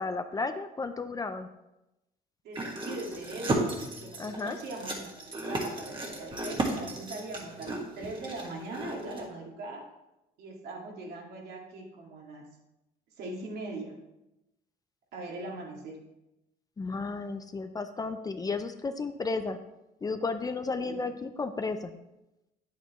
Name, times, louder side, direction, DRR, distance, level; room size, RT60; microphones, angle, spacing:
voice 1, 0.0-1.5 4.2-4.6 16.8-19.6 20.0-21.9, left 3 dB, 20° left, 8 dB, 0.5 m, -33 dB
voice 2, 2.4-3.6 4.0-9.8 10.4-12.5 13.2-13.9 15.1-16.0 20.8-21.1, right 2 dB, 70° right, -1 dB, 2.2 m, -41 dB
sound 1, 2.6-9.3, right 2 dB, 30° right, 1.7 m, -35 dB
9.1 x 8.2 x 3.1 m, 0.94 s
cardioid pair, 110°, 17 cm